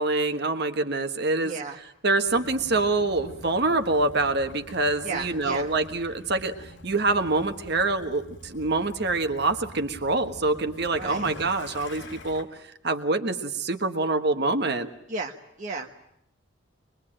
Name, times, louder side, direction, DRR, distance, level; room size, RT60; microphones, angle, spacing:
voice 1, 0.0-1.5 2.0-14.9, right 3 dB, 55° right, 7 dB, 1.4 m, -26 dB
voice 2, 1.4-1.8 5.0-5.7 11.0-11.3 15.1-15.9, right 3 dB, 40° right, 1 dB, 1.2 m, -34 dB
Waves surf / Splash splatter / Trickle dribble, 2.2-12.4, left 1 dB, 70° left, 3.6 m, -45 dB
24.0 x 22.0 x 8.9 m, 0.78 s
head